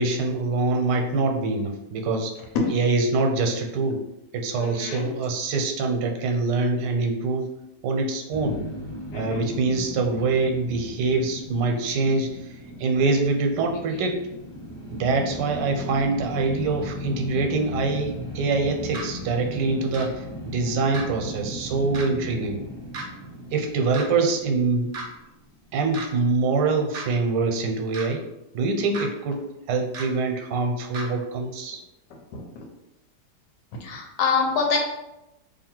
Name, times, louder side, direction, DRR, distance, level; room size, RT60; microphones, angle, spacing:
voice 1, 0.0-2.3 2.7-4.0 4.3-7.5 7.8-8.6 9.1-14.2 14.9-22.6 23.5-24.9 25.7-28.2 28.5-29.4 29.7-31.8, right 3 dB, 90° right, 3 dB, 1.2 m, -24 dB
voice 2, 4.6-5.1 9.1-9.4 32.3-32.6 33.8-34.8, left 5 dB, 80° left, 1 dB, 1.4 m, -26 dB
sound 1, 8.3-25.5, equal, 20° left, 1.0 m, -37 dB
sound 2, 18.9-19.1 19.9-20.1 20.9-21.1 21.9-22.1 22.9-23.0 23.9-24.1 24.9-25.1 25.9-26.1 26.9-27.1 27.9-28.1 28.9-29.1 29.9-30.1 30.9-31.1, right 3 dB, 65° right, 0.5 m, -33 dB
2.7 x 2.7 x 4.3 m, 0.92 s
omnidirectional pair, 1.9 m